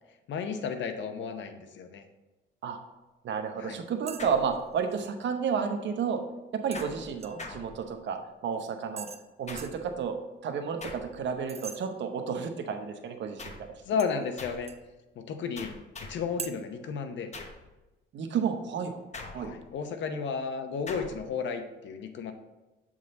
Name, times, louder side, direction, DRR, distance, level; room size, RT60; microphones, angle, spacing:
voice 1, 0.3-2.0 3.6-3.8 13.8-14.7 15.2-17.3 19.4-22.3, left 5 dB, 70° left, 7 dB, 0.8 m, -33 dB
voice 2, 3.2-6.2 6.5-9.1 9.4-13.7 18.1-19.0 19.3-19.5, right 6 dB, 65° right, 6 dB, 0.8 m, -31 dB
sound 1, 4.1-4.3 4.5-5.1 6.7-7.5 9.0-9.3 9.6-9.8 11.5-11.8 14.0-14.9 16.4-16.5, right 6 dB, 30° right, 0.6 m, -42 dB
sound 2, 4.2-5.0 6.7-8.3 9.5-10.0 10.8-11.4 13.4-13.8 14.4-14.8 15.6-16.4 17.3-17.7 19.1-19.8 20.9-21.3, left 3 dB, 35° left, 0.9 m, -44 dB
7.6 x 3.7 x 4.1 m, 1.1 s
cardioid pair, 90°, 20 cm